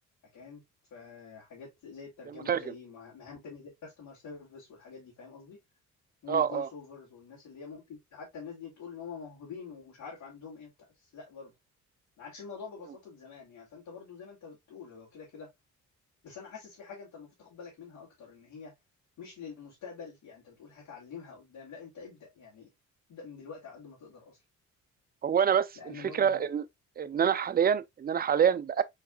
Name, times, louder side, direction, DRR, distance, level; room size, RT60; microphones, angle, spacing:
voice 1, 0.9-5.6 6.2-10.7 11.1-11.5 12.2-15.5 16.2-18.7 19.2-22.7 23.1-24.4 25.8-26.4, left 5 dB, 75° left, 2.7 m, -46 dB
voice 2, 2.3-2.7 6.3-6.7 25.2-26.7 27.0-28.8, right 8 dB, 30° right, 0.5 m, -27 dB
4.6 x 4.0 x 2.3 m
cardioid pair, 90°, 30 cm